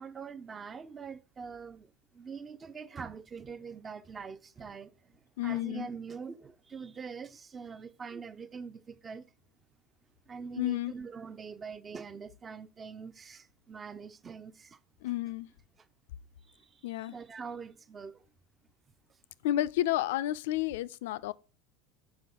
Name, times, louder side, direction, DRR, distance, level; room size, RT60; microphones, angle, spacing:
voice 1, 0.0-9.3 10.3-14.8 16.5-18.2, right 5 dB, 25° right, 0.5 m, -44 dB
voice 2, 5.4-5.9 10.6-10.9 15.0-15.5 16.8-17.2 19.4-21.3, left 14 dB, 60° left, 0.3 m, -31 dB
7.2 x 5.3 x 3.6 m
figure-of-eight pair, 75°, 0 cm